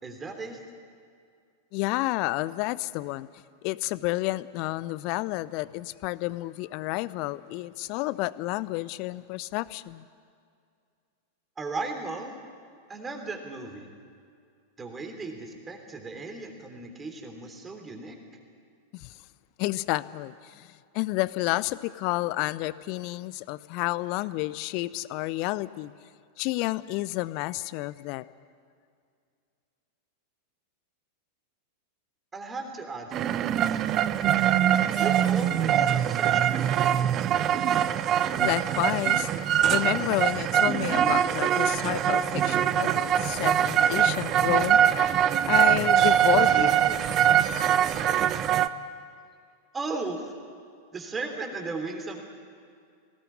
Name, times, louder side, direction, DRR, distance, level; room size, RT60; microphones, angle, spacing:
voice 1, 0.0-0.6 11.6-12.3 12.9-13.9 14.8-18.2 32.3-33.8 35.0-38.2 46.3-46.9 49.7-50.3 50.9-52.2, right 3 dB, 15° right, 4 dB, 3.2 m, -37 dB
voice 2, 1.7-3.3 3.6-10.1 18.9-19.1 19.6-20.7 20.9-25.9 26.4-28.2 38.4-39.3 39.7-44.8 45.5-46.7, left 19 dB, 45° left, 19 dB, 0.6 m, -30 dB
sound 1, 33.1-48.7, right 10 dB, 30° right, 0.7 m, -23 dB
20.0 x 17.5 x 9.9 m, 2.2 s
figure-of-eight pair, 90°, 0 cm